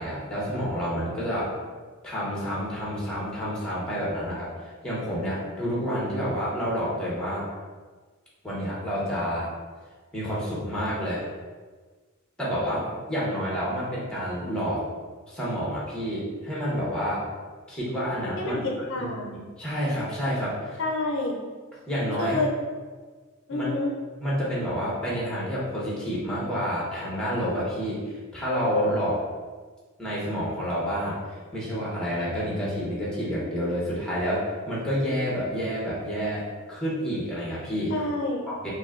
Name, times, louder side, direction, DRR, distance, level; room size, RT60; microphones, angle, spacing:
voice 1, 0.0-1.5 2.0-7.5 8.4-9.5 10.1-11.3 12.4-14.9 15.3-17.2 17.7-19.1 19.6-20.8 21.9-22.4 23.5-23.7 24.2-29.2 30.0-38.0 38.5-38.7, equal, 5° left, -7 dB, 1.0 m, -29 dB
voice 2, 18.4-19.4 20.8-21.4 22.2-22.5 23.5-23.9 37.9-38.5, left 2 dB, 60° left, 0 dB, 0.4 m, -28 dB
5.2 x 2.2 x 2.5 m, 1.4 s
head